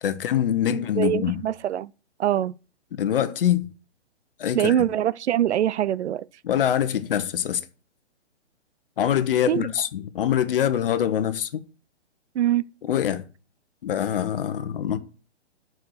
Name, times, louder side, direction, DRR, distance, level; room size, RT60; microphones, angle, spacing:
voice 1, 0.0-1.4 2.9-3.7 4.4-4.8 6.4-7.6 9.0-11.6 12.9-13.2 13.8-15.0, left 10 dB, 50° left, 1.0 m, -24 dB
voice 2, 0.7-1.9 2.2-2.5 4.5-6.3 9.5-9.7 12.3-12.6, right 11 dB, 70° right, 0.5 m, -23 dB
6.8 x 4.8 x 6.3 m
hypercardioid pair, 145°, 35 cm